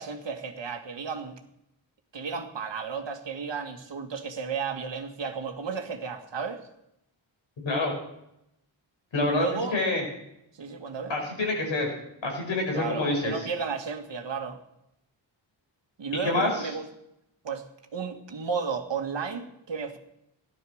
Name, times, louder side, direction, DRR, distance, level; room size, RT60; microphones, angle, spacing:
voice 1, 0.0-1.4 2.1-6.6 9.3-9.8 10.6-11.1 12.7-14.6 16.0-16.8 17.4-17.6 17.9-20.0, right 5 dB, 65° right, 4 dB, 2.1 m, -33 dB
voice 2, 7.6-8.0 9.1-10.0 11.1-11.9 12.2-13.3 16.2-16.7, left 2 dB, 75° left, 1 dB, 5.7 m, -27 dB
16.5 x 12.0 x 6.5 m, 0.82 s
wide cardioid pair, 120°, 46 cm